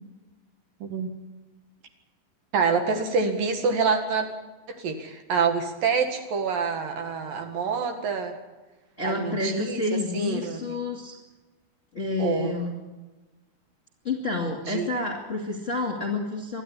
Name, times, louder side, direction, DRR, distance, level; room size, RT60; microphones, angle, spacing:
voice 1, 2.5-4.3 4.7-8.3 9.0-10.6 12.2-12.5 14.6-14.9, right 5 dB, 60° right, 5 dB, 3.3 m, -26 dB
voice 2, 9.0-11.2 11.9-12.8 14.0-16.6, left 2 dB, 25° left, -1 dB, 2.1 m, -29 dB
23.5 x 13.5 x 9.8 m, 1.2 s
omnidirectional pair, 4.7 m